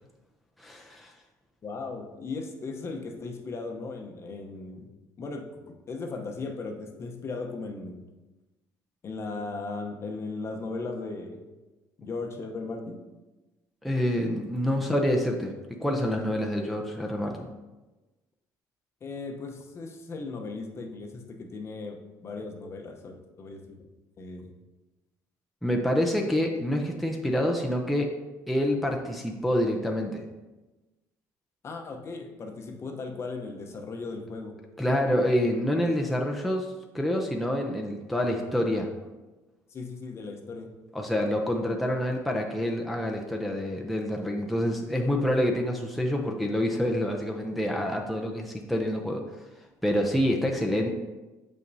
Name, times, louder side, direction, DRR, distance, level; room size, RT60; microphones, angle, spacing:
voice 1, 0.6-1.1 13.8-15.5 15.8-17.5 25.6-28.1 28.5-30.2 34.8-38.9 40.9-49.2 49.8-50.9, equal, ahead, 0 dB, 0.6 m, -27 dB
voice 2, 1.6-4.9 5.2-5.5 5.9-8.0 9.0-11.4 12.0-13.0 19.0-23.8 24.2-24.5 31.6-34.5 39.7-40.7, left 3 dB, 40° left, 4 dB, 0.8 m, -37 dB
7.3 x 5.5 x 2.7 m, 1.1 s
cardioid pair, 115°, 7 cm